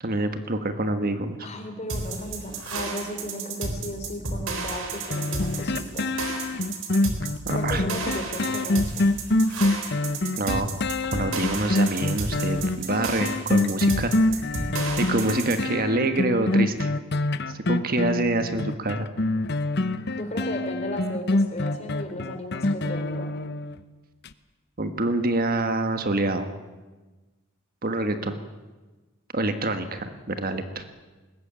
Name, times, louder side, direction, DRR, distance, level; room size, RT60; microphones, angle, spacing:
voice 1, 0.0-1.4 7.4-7.8 10.4-10.7 11.1-14.5 15.0-17.0 17.5-19.1 24.8-26.5 27.8-28.4 29.3-30.8, right 2 dB, 45° right, 8 dB, 1.4 m, -26 dB
voice 2, 1.4-6.1 7.5-9.1 20.2-23.3, equal, 30° left, 5 dB, 3.7 m, -35 dB
sound 1, 1.9-15.6, right 3 dB, 70° right, 4.0 m, -32 dB
sound 2, 5.1-23.8 24.2-24.3, left 2 dB, 50° left, 1.0 m, -25 dB
21.5 x 19.0 x 8.9 m, 1.2 s
head